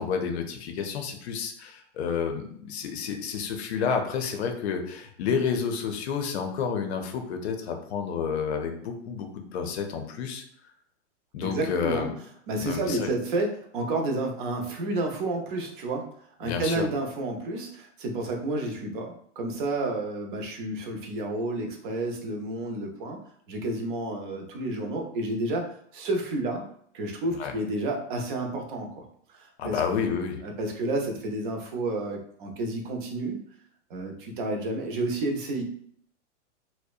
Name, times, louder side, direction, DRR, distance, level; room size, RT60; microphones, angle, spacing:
voice 1, 0.0-10.4 11.3-12.2 12.6-13.1 16.4-16.9 27.3-27.6 29.6-30.4, left 6 dB, 60° left, 5 dB, 0.6 m, -30 dB
voice 2, 11.4-12.1 12.5-16.1 16.4-23.2 23.5-25.6 25.9-26.6 26.9-29.8 30.4-33.4 33.9-35.6, right 2 dB, 45° right, 2 dB, 0.6 m, -30 dB
2.7 x 2.1 x 2.3 m, 0.64 s
hypercardioid pair, 140°, 37 cm